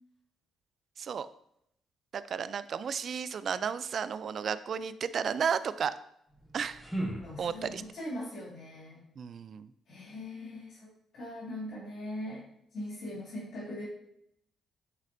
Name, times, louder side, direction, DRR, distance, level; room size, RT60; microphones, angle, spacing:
voice 1, 2.1-5.9 6.5-6.8 7.4-7.8 9.2-9.7, right 7 dB, 55° right, 14 dB, 0.3 m, -33 dB
sound 1, 6.3-8.0, right 1 dB, ahead, 1.6 m, -38 dB
voice 2, 7.2-9.0 9.9-10.9 11.1-12.5 12.7-13.8, left 1 dB, 65° left, -8 dB, 2.4 m, -40 dB
9.7 x 4.2 x 2.6 m, 0.75 s
cardioid pair, 90°, 0 cm